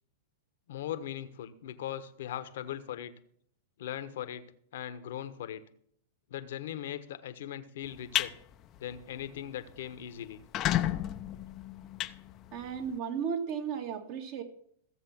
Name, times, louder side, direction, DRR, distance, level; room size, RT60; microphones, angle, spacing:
voice 1, 0.7-3.1 3.8-4.4 4.7-5.6 6.3-8.3 8.8-10.4, left 10 dB, 65° left, 11 dB, 1.2 m, -39 dB
sound 1, 7.9-8.3 8.8-9.0 9.4-9.5 9.7-9.8 10.3-12.9, left 13 dB, 35° left, 0.7 m, -31 dB
voice 2, 12.5-14.4, right 7 dB, 50° right, 4 dB, 2.2 m, -34 dB
15.5 x 7.5 x 5.9 m, 0.65 s
hypercardioid pair, 110°, 0 cm